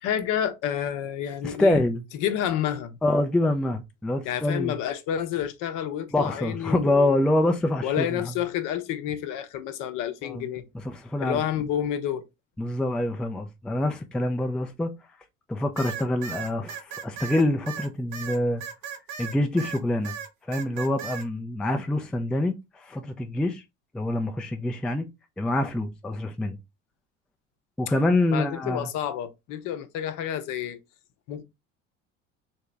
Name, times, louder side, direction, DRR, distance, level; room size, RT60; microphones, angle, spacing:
voice 1, 0.0-1.8 2.2-2.9 4.2-7.1 7.8-10.7 11.2-12.2 28.3-30.8 31.3-31.4, left 10 dB, 55° left, 0.7 m, -29 dB
voice 2, 1.4-2.0 3.0-4.8 6.1-8.3 10.2-10.5 10.8-11.4 12.6-14.9 15.5-18.6 19.2-20.1 20.5-23.6 23.9-25.1 25.4-26.6 27.8-28.9, left 1 dB, ahead, 0.3 m, -26 dB
sound 1, 15.8-19.8 20.0-21.3, right 8 dB, 55° right, 0.9 m, -36 dB
3.6 x 2.8 x 3.2 m
hypercardioid pair, 70°, 38 cm